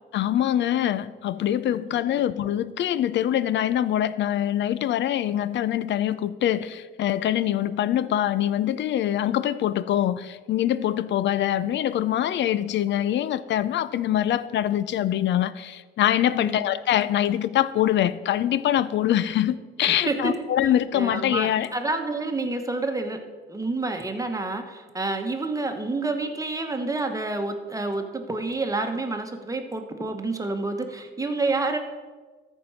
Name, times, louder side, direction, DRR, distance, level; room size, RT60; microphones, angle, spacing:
voice 1, 0.1-21.7, left 11 dB, 65° left, 16 dB, 0.5 m, -24 dB
voice 2, 19.9-20.3 20.9-23.2 23.5-31.8, right 3 dB, 15° right, 5 dB, 1.2 m, -28 dB
13.5 x 4.6 x 5.7 m, 1.4 s
cardioid pair, 90°, 20 cm